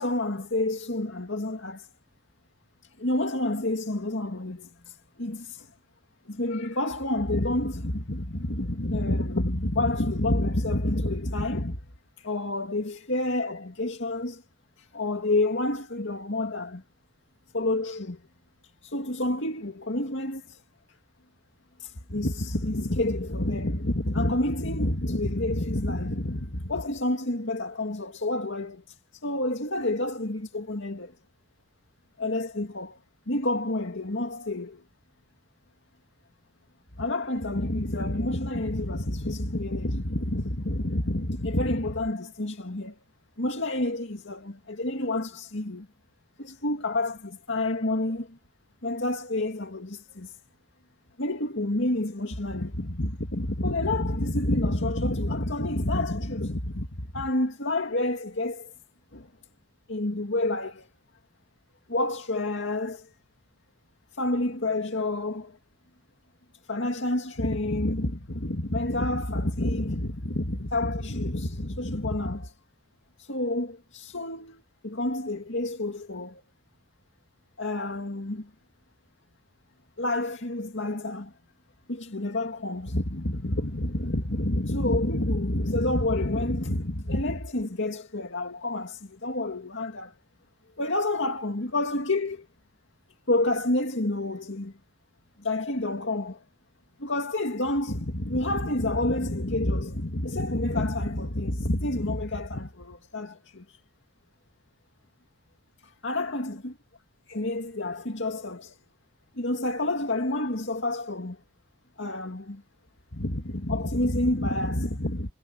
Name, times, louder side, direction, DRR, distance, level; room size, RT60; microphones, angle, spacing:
voice 1, 0.0-1.9 3.0-5.7 6.3-11.8 12.2-14.4 14.8-16.8 17.5-18.2 18.8-20.6 21.8-31.2 32.2-33.0 33.3-34.8 37.0-43.0 43.4-45.9 46.4-48.4 48.8-50.4 51.2-58.7 59.1-59.3 59.9-60.9 61.9-63.1 64.1-65.6 66.7-72.5 73.2-76.4 77.6-78.5 80.0-81.3 81.9-90.1 90.8-92.5 93.3-94.7 95.4-96.4 97.0-103.8 105.8-106.7 107.3-108.8 109.3-111.4 112.0-112.6 113.1-115.3, left 1 dB, 60° left, 2.4 m, -29 dB
head